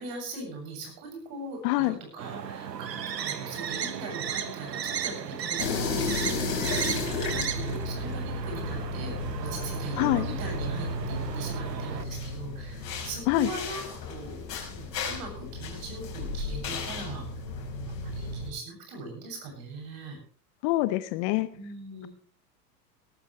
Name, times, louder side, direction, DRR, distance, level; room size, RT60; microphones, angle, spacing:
voice 1, 0.0-13.8 14.1-17.4 18.0-20.2 21.5-22.1, right 2 dB, 45° right, 2 dB, 7.8 m, -40 dB
voice 2, 1.6-2.0 10.0-10.3 13.3-13.5 20.6-21.5, left 18 dB, 40° left, 14 dB, 0.9 m, -25 dB
sound 1, 2.2-12.0, right 8 dB, 80° right, 1.4 m, -35 dB
sound 2, 5.6-18.5, left 3 dB, 70° left, 5.4 m, -33 dB
17.5 x 14.0 x 3.3 m, 0.42 s
hypercardioid pair, 95°, 49 cm